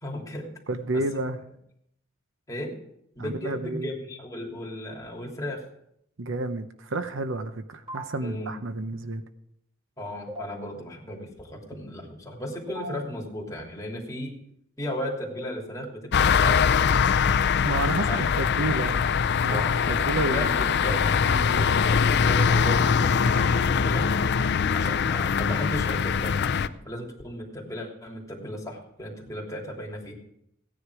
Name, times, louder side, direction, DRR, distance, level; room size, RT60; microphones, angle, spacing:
voice 1, 0.0-0.4 0.9-1.0 2.5-2.7 3.1-5.6 8.2-8.6 10.0-14.3 14.8-16.7 18.1-18.3 19.5-21.0 21.6-24.1 24.7-30.1, left 1 dB, 15° left, -2 dB, 3.0 m, -35 dB
voice 2, 0.7-1.4 3.2-3.9 6.2-9.2 17.6-19.0 19.4-20.6 21.3-21.8, right 2 dB, 65° right, 10 dB, 0.8 m, -30 dB
sound 1, 7.9-8.0 10.3-10.4 12.7-12.9 15.1-15.5, right 1 dB, 25° right, 5.4 m, -36 dB
sound 2, 16.1-26.7, left 6 dB, 55° left, 0.5 m, -22 dB
16.5 x 10.0 x 4.8 m, 0.74 s
head